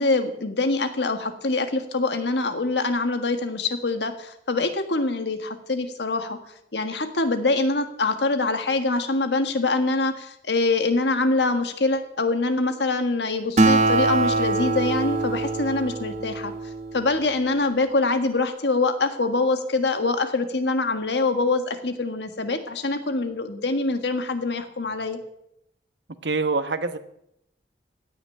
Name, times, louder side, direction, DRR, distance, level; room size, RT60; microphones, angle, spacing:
voice 1, 0.0-6.4 6.7-16.5 16.9-25.2, left 3 dB, 75° left, 7 dB, 1.6 m, -24 dB
Acoustic guitar, 13.6-17.3, right 2 dB, 40° right, 1.4 m, -23 dB
voice 2, 26.2-27.0, right 3 dB, 75° right, 10 dB, 1.1 m, -25 dB
16.5 x 6.0 x 9.7 m, 0.78 s
head